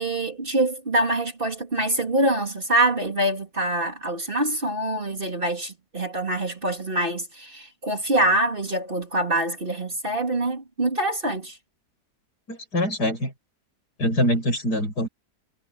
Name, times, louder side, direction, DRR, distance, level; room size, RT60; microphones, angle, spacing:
voice 1, 0.0-11.6, right 1 dB, 30° right, 2.9 m, -25 dB
voice 2, 12.5-13.3 14.0-15.1, equal, 75° left, 7.5 m, -24 dB
omnidirectional pair, 1.7 m